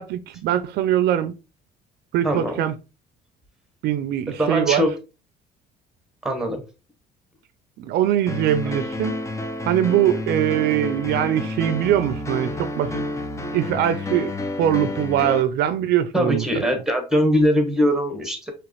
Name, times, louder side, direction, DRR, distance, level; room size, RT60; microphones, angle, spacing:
voice 1, 0.0-1.3 2.1-2.7 3.8-4.8 7.8-9.2 9.7-13.0 13.5-14.3 14.6-16.4, right 11 dB, 75° right, 0.5 m, -22 dB
voice 2, 2.2-2.6 4.4-4.9 6.2-6.6 16.1-18.5, equal, 5° right, 1.3 m, -21 dB
sound 1, 8.3-15.4, left 2 dB, 15° left, 0.6 m, -29 dB
5.0 x 3.0 x 3.1 m
cardioid pair, 110°, 17 cm